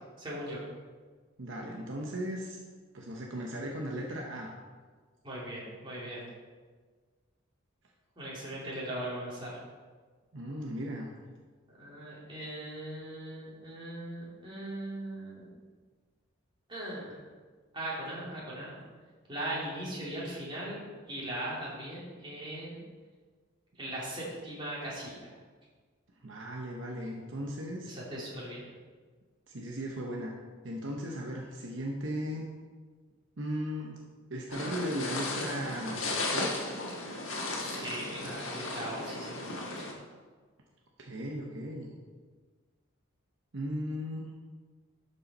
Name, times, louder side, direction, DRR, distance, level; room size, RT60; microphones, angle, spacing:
voice 1, 0.2-0.6 5.2-6.2 8.2-9.6 11.8-15.5 16.7-17.2 17.7-18.8 19.3-22.8 23.8-25.3 27.9-28.6 37.5-39.9, right 1 dB, 25° right, -7 dB, 2.7 m, -39 dB
voice 2, 1.4-2.6 2.9-4.5 10.3-11.1 26.2-27.9 29.5-30.3 30.6-32.5 33.4-34.0 34.3-36.0 36.3-36.6 41.0-41.9 43.5-44.3, equal, 60° right, 0 dB, 0.8 m, -37 dB
sound 1, 34.5-39.9, left 2 dB, 65° left, 1.5 m, -35 dB
12.0 x 5.4 x 4.2 m, 1.5 s
head